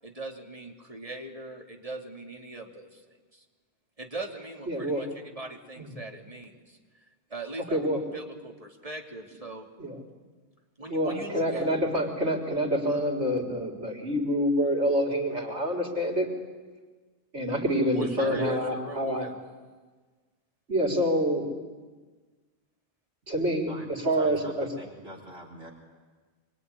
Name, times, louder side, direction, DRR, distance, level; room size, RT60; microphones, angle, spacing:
voice 1, 0.0-3.0 3.3-3.4 4.0-6.8 7.3-9.7 10.8-11.8 17.9-19.4, right 1 dB, 30° right, 1 dB, 3.0 m, -39 dB
voice 2, 4.7-5.0 5.8-6.0 7.7-8.0 9.8-10.0 10.9-16.3 17.3-19.3 20.7-21.5 23.3-24.7, equal, 85° right, -1 dB, 4.5 m, -27 dB
voice 3, 24.2-25.7, right 1 dB, 65° right, 1 dB, 4.2 m, -44 dB
25.5 x 23.0 x 9.8 m, 1.4 s
omnidirectional pair, 1.1 m